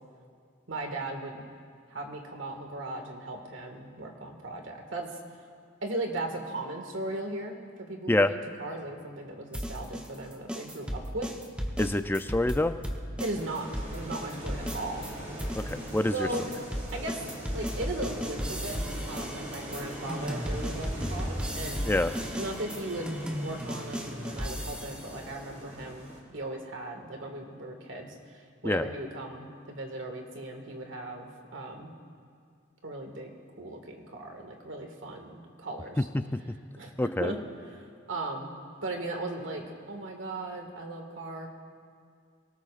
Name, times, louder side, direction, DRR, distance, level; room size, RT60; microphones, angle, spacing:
voice 1, 0.7-1.5 1.9-5.5 5.8-11.3 13.2-15.1 16.1-16.5 16.9-18.8 19.1-21.8 22.4-31.9 32.8-33.3 33.6-36.1 36.5-38.5 38.8-41.5, right 2 dB, 85° right, 3 dB, 1.9 m, -37 dB
sound 1, 9.5-15.1 15.4-25.1, equal, 5° right, 0.9 m, -35 dB
voice 2, 11.8-12.8 15.7-16.1 21.9-22.1 28.6-28.9 37.0-37.3, left 1 dB, 10° left, 10 dB, 0.4 m, -26 dB
sound 2, 13.3-26.2, right 1 dB, 40° right, 3.1 m, -41 dB
24.0 x 18.5 x 2.5 m, 2.1 s
head